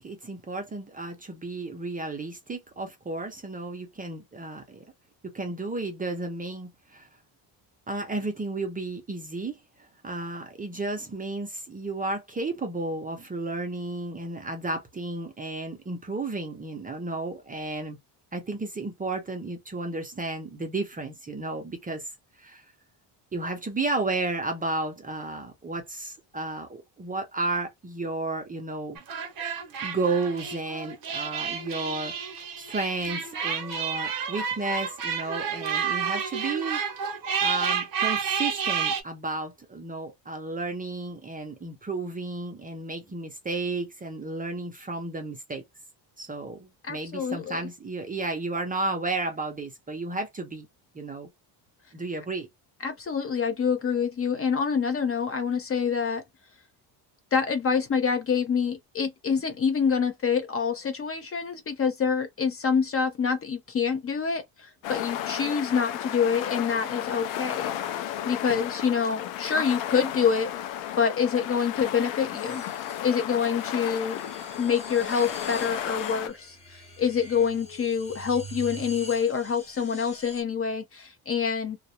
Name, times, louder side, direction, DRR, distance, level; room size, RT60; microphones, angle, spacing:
voice 1, 0.0-4.8 5.2-7.1 7.9-18.0 18.3-22.1 22.4-22.6 23.3-29.0 29.8-32.2 32.6-36.8 37.4-45.6 46.2-50.7 50.9-51.3 51.9-52.5, right 3 dB, 20° right, 0.5 m, -33 dB
sound 1, 29.0-39.0, right 7 dB, 50° right, 0.8 m, -30 dB
voice 2, 46.8-47.6 52.8-56.2 57.3-67.7 68.2-70.5 71.0-72.6 73.0-74.2 74.6-81.8, left 6 dB, 30° left, 0.5 m, -26 dB
sound 2, 64.8-76.3, left 11 dB, 80° left, 0.6 m, -33 dB
sound 3, 72.3-80.4, right 1 dB, 15° left, 1.2 m, -45 dB
2.4 x 2.0 x 2.7 m
cardioid pair, 135°, 44 cm